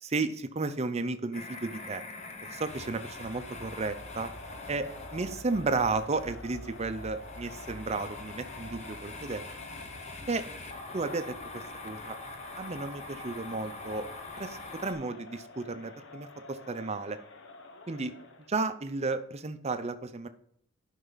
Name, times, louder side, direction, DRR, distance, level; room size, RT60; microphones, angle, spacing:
voice 1, 0.0-2.0 2.5-4.3 4.7-4.9 5.1-9.4 10.3-10.4 10.9-12.2 12.6-14.1 14.4-17.2 17.9-18.1 18.5-20.3, right 3 dB, 30° right, 10 dB, 0.6 m, -33 dB
sound 1, 1.3-14.9, left 2 dB, 30° left, 0.9 m, -44 dB
Crowd, 2.4-18.6, left 3 dB, 60° left, 0.9 m, -50 dB
11.0 x 5.5 x 4.0 m, 0.66 s
head